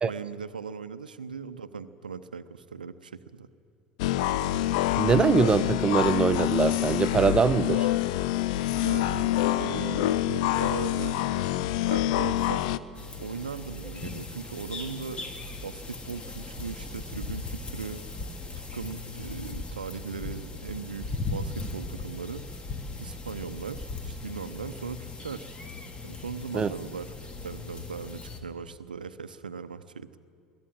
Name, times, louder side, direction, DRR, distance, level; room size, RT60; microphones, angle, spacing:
voice 1, 0.0-3.5 8.7-11.3 11.9-12.7 13.2-15.2 15.6-18.0 18.6-22.5 23.0-25.5 26.0-30.2, right 6 dB, 80° right, 13 dB, 0.8 m, -38 dB
sound 1, 4.0-12.8, left 14 dB, 60° left, 0.6 m, -26 dB
voice 2, 5.0-7.9 26.5-26.7, right 5 dB, 20° right, 16 dB, 0.5 m, -23 dB
sound 2, 12.9-28.4, left 3 dB, 25° left, 2.1 m, -38 dB
22.5 x 15.0 x 9.0 m, 2.3 s
figure-of-eight pair, 75°, 5 cm